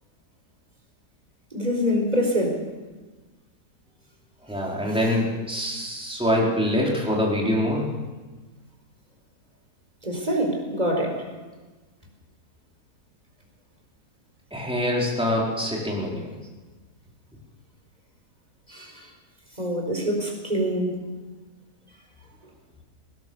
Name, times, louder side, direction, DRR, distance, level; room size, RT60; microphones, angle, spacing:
voice 1, 1.5-2.6 10.0-11.2 18.7-19.1 19.6-21.0, equal, 25° right, 2 dB, 4.7 m, -25 dB
voice 2, 4.5-7.9 14.5-16.3, left 1 dB, 5° right, -3 dB, 4.3 m, -24 dB
19.5 x 18.5 x 7.1 m, 1.3 s
omnidirectional pair, 1.7 m